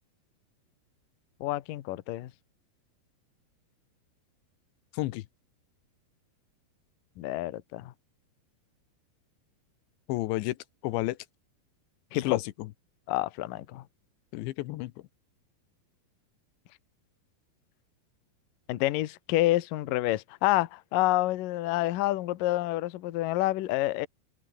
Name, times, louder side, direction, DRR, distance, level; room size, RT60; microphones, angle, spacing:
voice 1, 1.4-2.3 7.2-7.9 12.1-12.4 13.1-13.8 18.7-24.1, left 16 dB, 65° left, 2.3 m, -28 dB
voice 2, 4.9-5.3 10.1-10.6 10.8-11.2 12.1-12.7 14.3-14.9, left 18 dB, 85° left, 3.2 m, -31 dB
omnidirectional pair, 5.1 m